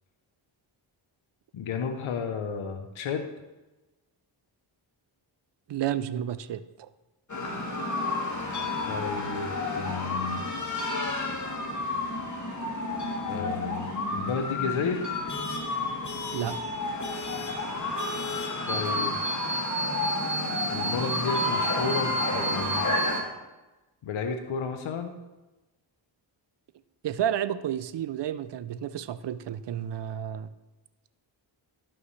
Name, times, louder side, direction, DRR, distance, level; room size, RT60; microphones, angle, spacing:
voice 1, 1.5-3.3 8.9-10.4 13.3-15.1 18.7-19.2 20.7-22.9 24.0-25.1, left 5 dB, 70° left, 6 dB, 0.8 m, -32 dB
voice 2, 5.7-6.9 16.3-16.5 27.0-30.5, right 10 dB, 60° right, 15 dB, 0.6 m, -31 dB
sound 1, 7.3-23.2, left 1 dB, 35° left, 1.7 m, -30 dB
12.0 x 5.6 x 3.2 m, 1.1 s
cardioid pair, 50°, 49 cm